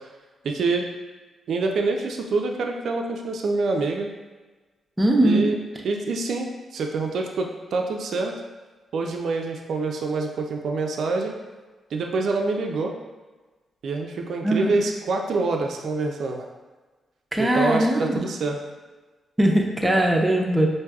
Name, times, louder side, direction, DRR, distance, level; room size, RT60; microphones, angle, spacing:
voice 1, 0.4-0.9 1.5-4.1 5.2-5.6 5.8-8.3 8.9-11.4 11.9-12.9 13.8-16.5 17.4-18.6, right 3 dB, 70° right, 2 dB, 0.3 m, -26 dB
voice 2, 5.0-5.5 14.4-14.7 17.3-18.2 19.4-20.7, right 1 dB, 15° right, 0 dB, 0.6 m, -20 dB
4.5 x 2.6 x 2.3 m, 1.3 s
cardioid pair, 65°, 0 cm